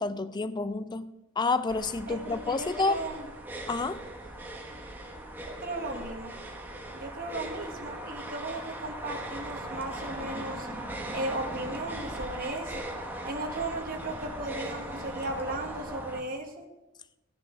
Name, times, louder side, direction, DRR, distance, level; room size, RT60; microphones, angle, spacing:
voice 1, 0.0-3.0 3.7-4.0, left 3 dB, 20° left, 13 dB, 0.4 m, -29 dB
sound 1, 1.7-16.2, right 1 dB, 10° right, 1.1 m, -39 dB
voice 2, 2.1-3.2 5.5-6.3 6.9-10.7 11.1-12.9 13.2-16.7, right 2 dB, 45° right, 3 dB, 1.4 m, -36 dB
15.0 x 6.8 x 4.5 m, 0.98 s
head